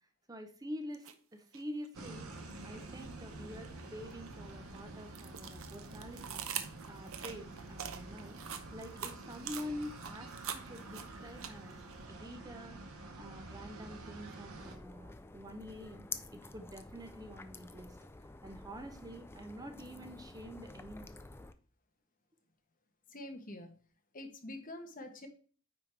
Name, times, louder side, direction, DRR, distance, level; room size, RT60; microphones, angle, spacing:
voice 1, 0.3-2.3 2.6-8.4 8.7-11.8 12.1-18.0 18.4-21.1, equal, 15° right, 7 dB, 0.7 m, -47 dB
sound 1, 0.9-1.1 1.5-3.1 3.5-11.9, right 8 dB, 65° right, 0.7 m, -44 dB
sound 2, 1.9-14.8, right 2 dB, 90° right, 1.4 m, -48 dB
sound 3, 14.6-21.5, left 3 dB, 10° left, 0.4 m, -49 dB
voice 2, 23.1-23.8 24.1-25.3, left 1 dB, 40° left, 5 dB, 1.2 m, -46 dB
9.3 x 3.7 x 4.4 m, 0.42 s
head